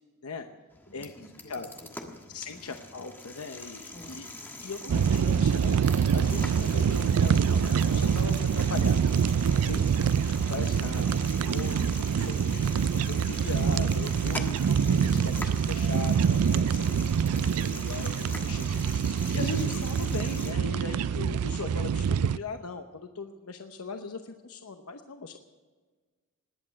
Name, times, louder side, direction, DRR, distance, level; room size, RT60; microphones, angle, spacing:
sound 1, 0.7-20.5, left 2 dB, 10° left, 1.5 m, -43 dB
voice 1, 0.9-2.7 3.9-4.2, equal, 45° left, 4 dB, 3.0 m, -51 dB
voice 2, 2.3-4.3 4.6-9.0 9.4-9.9 10.3-11.1 11.5-25.4, left 4 dB, 80° left, 6 dB, 0.9 m, -39 dB
sound 2, 4.9-22.4, right 7 dB, 85° right, 0.4 m, -25 dB
20.0 x 8.6 x 7.7 m, 1.4 s
head